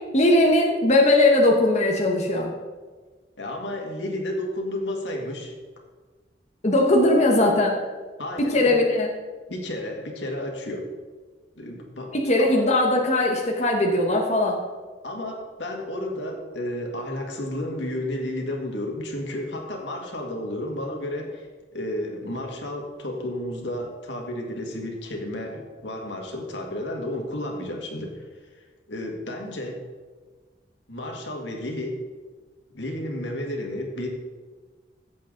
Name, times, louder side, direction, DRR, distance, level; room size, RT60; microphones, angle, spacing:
voice 1, 0.1-2.5 6.6-7.8 8.5-9.1 12.1-14.6, left 1 dB, 40° left, 0 dB, 1.2 m, -19 dB
voice 2, 3.4-5.5 8.2-8.8 9.5-10.9 11.6-12.6 15.0-21.5 21.7-28.2 28.9-29.8 30.9-32.0 32.7-34.1, left 1 dB, 90° left, 1 dB, 2.0 m, -32 dB
14.5 x 8.1 x 3.9 m, 1.4 s
head